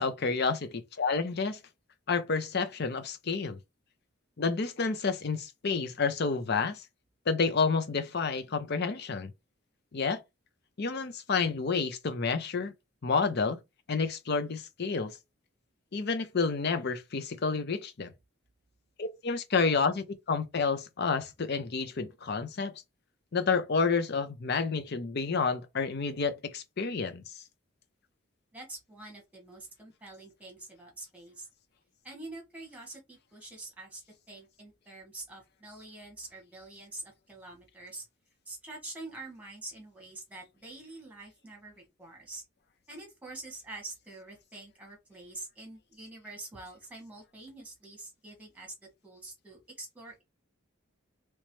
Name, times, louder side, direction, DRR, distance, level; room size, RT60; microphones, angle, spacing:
voice 1, 0.0-1.6 2.1-3.6 4.4-6.8 7.3-9.3 9.9-10.2 10.8-12.7 13.0-13.6 13.9-15.1 15.9-18.1 19.0-22.7 23.3-27.4, left 4 dB, 50° left, 0.6 m, -29 dB
voice 2, 28.5-31.5 32.0-34.0 34.3-38.1 38.4-42.4 42.9-48.7 49.0-50.2, right 2 dB, 5° right, 1.5 m, -46 dB
3.2 x 3.1 x 3.1 m
head